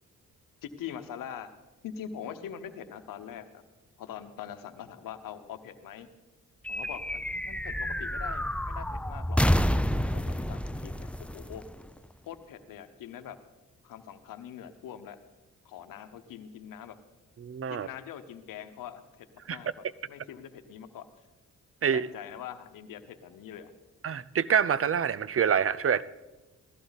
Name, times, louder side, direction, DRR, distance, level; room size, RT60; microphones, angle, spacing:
voice 1, 0.6-1.5 1.8-3.6 4.0-6.1 6.7-9.4 10.1-11.7 12.3-13.4 13.8-15.2 15.6-17.0 17.7-19.7 20.1-21.1 21.9-23.7, left 9 dB, 90° left, 9 dB, 1.0 m, -43 dB
sound 1, 6.6-12.3, equal, 5° left, 0.6 m, -29 dB
voice 2, 17.4-17.9 19.5-19.6 21.8-22.1 24.0-26.0, right 7 dB, 45° right, 19 dB, 0.6 m, -26 dB
16.5 x 14.0 x 4.0 m, 1.1 s
cardioid pair, 55°, 32 cm